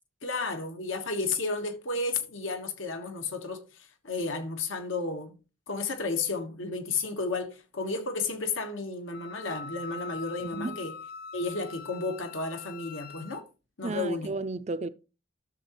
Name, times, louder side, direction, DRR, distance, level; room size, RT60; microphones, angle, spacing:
voice 1, 0.2-5.3 5.7-11.0 11.3-13.5 13.8-14.3, left 3 dB, 75° left, 1.3 m, -32 dB
Wind instrument woodwind instrument, 9.1-13.4, left 6 dB, 45° left, 0.5 m, -43 dB
voice 2, 10.4-10.8 13.8-14.9, right 3 dB, 35° right, 0.4 m, -33 dB
12.0 x 6.6 x 3.0 m
head